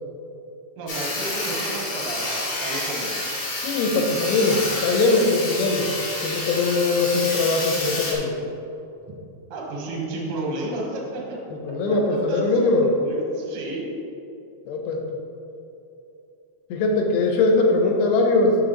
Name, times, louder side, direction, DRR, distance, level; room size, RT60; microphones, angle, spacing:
voice 1, 0.8-3.1 9.5-11.4 11.9-12.0 12.3-12.4 12.8-13.9, right 2 dB, 75° right, -3 dB, 1.3 m, -31 dB
Sawing, 0.9-8.1, left 2 dB, 45° left, 1.9 m, -29 dB
voice 2, 3.6-5.9 6.2-8.4 11.6-12.9 14.7-15.0 16.7-18.6, left 3 dB, 80° left, 1 dB, 2.6 m, -21 dB
6.8 x 6.5 x 3.8 m, 2.8 s
omnidirectional pair, 4.8 m